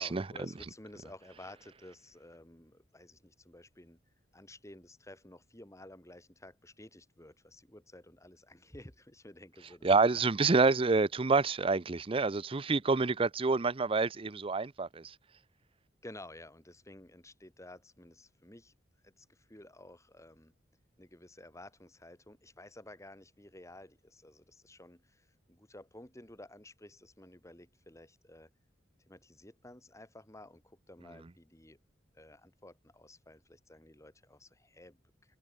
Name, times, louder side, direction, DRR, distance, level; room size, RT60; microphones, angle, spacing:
voice 1, 0.0-4.0 4.3-10.2 16.0-18.7 19.0-20.5 21.0-28.5 29.1-31.8 32.1-35.0, left 1 dB, 15° left, 3.1 m, -53 dB
voice 2, 9.8-15.2, right 4 dB, 30° right, 0.6 m, -27 dB
head